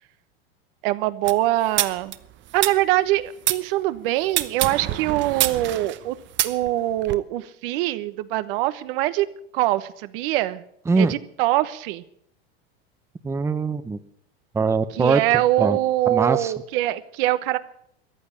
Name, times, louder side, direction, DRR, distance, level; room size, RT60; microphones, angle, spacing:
voice 1, 0.8-2.1 2.5-6.2 6.4-9.3 9.5-10.6 11.0-12.0 14.9-17.6, right 15 dB, 60° right, 14 dB, 1.2 m, -23 dB
sound 1, 1.2-3.6 4.3-7.1, right 14 dB, 35° right, 1.0 m, -26 dB
voice 2, 13.2-14.0 14.5-15.2 15.6-15.8 16.1-16.5, right 4 dB, 10° right, 12 dB, 0.7 m, -21 dB
14.5 x 9.9 x 9.8 m, 0.70 s
supercardioid pair, 120°, 31 cm